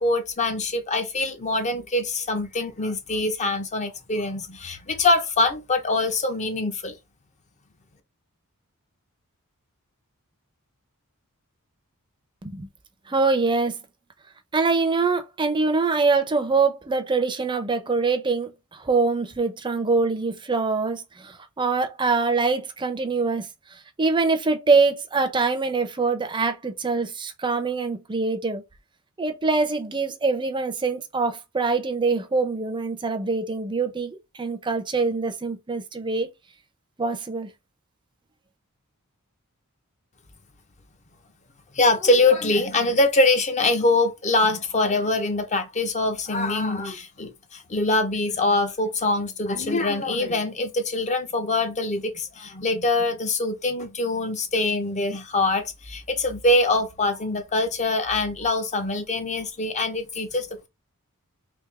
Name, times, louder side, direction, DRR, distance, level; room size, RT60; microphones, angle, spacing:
voice 1, 0.0-7.0 41.7-60.7, left 2 dB, 30° left, 0.7 m, -24 dB
voice 2, 13.1-13.8 14.5-23.5 24.0-28.6 29.2-36.3 37.0-37.5, right 4 dB, 20° right, 0.6 m, -24 dB
3.5 x 2.7 x 3.2 m
head